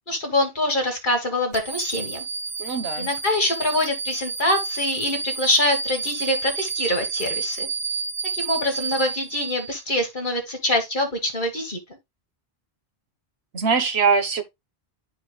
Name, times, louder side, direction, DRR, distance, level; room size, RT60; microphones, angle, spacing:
voice 1, 0.1-2.3 3.0-7.7 8.3-11.8, left 1 dB, 50° left, 1.9 m, -24 dB
sound 1, 1.5-10.0, right 4 dB, 35° right, 0.5 m, -30 dB
voice 2, 2.6-3.1 13.5-14.4, right 5 dB, 70° right, 1.3 m, -22 dB
11.5 x 4.5 x 2.2 m
omnidirectional pair, 1.1 m